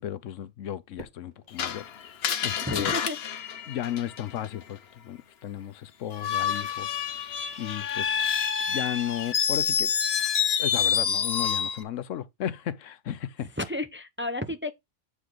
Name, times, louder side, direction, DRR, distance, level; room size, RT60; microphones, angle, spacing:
voice 1, 0.0-1.9 2.4-3.0 3.7-7.0 7.6-8.4 8.7-9.9 10.6-13.5, left 11 dB, 85° left, 1.1 m, -34 dB
Fireworks, 1.0-3.3, right 2 dB, 35° right, 1.9 m, -51 dB
Screech, 1.6-4.5 6.1-11.8, left 7 dB, 60° left, 1.0 m, -28 dB
voice 2, 2.6-3.6 7.4-7.6 13.6-14.7, left 1 dB, 15° right, 0.6 m, -33 dB
8.5 x 4.9 x 3.9 m
omnidirectional pair, 1.3 m